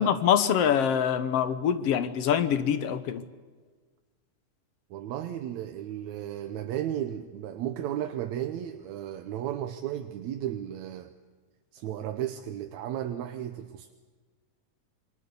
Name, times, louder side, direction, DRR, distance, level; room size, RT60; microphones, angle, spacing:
voice 1, 0.0-3.3, left 8 dB, 60° left, 1.8 m, -25 dB
voice 2, 4.9-11.1 11.7-13.9, right 11 dB, 70° right, 2.1 m, -34 dB
28.5 x 23.0 x 7.0 m
omnidirectional pair, 3.6 m